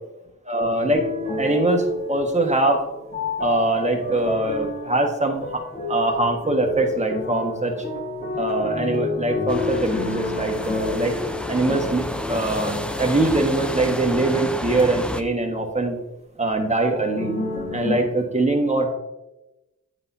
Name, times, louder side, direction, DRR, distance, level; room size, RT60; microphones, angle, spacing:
voice 1, 0.4-1.1 1.4-2.8 3.4-5.6 5.9-7.8 8.3-11.2 11.5-16.0 16.4-17.3 17.7-18.9, right 2 dB, 20° right, 2 dB, 1.5 m, -22 dB
sound 1, 0.9-15.5 16.9-18.0, left 3 dB, 30° left, 2.7 m, -30 dB
sound 2, 9.5-15.2, equal, 5° left, 0.6 m, -31 dB
9.7 x 8.1 x 2.7 m, 0.99 s
cardioid pair, 60°, 32 cm